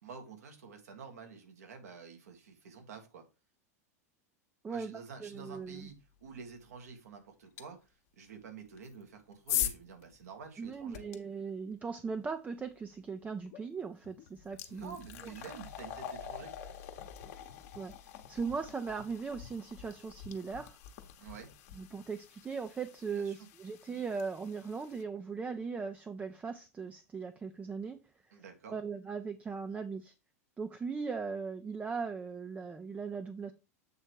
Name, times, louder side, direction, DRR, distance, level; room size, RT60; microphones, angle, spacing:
voice 1, 0.0-3.2 4.7-7.9 8.2-11.0 14.7-16.5 21.2-21.5 23.1-23.5 28.3-28.8, right 5 dB, 75° right, 1.7 m, -49 dB
voice 2, 4.6-5.9 10.6-15.0 15.2-15.3 17.7-17.9 18.3-20.8 21.8-28.0 28.7-30.1 30.6-33.5, right 5 dB, 15° right, 0.5 m, -39 dB
sound 1, 7.6-7.7 8.7-11.2 13.5-13.6 14.0-25.0, left 10 dB, 60° left, 1.0 m, -42 dB
7.6 x 3.3 x 4.5 m
hypercardioid pair, 95°, 9 cm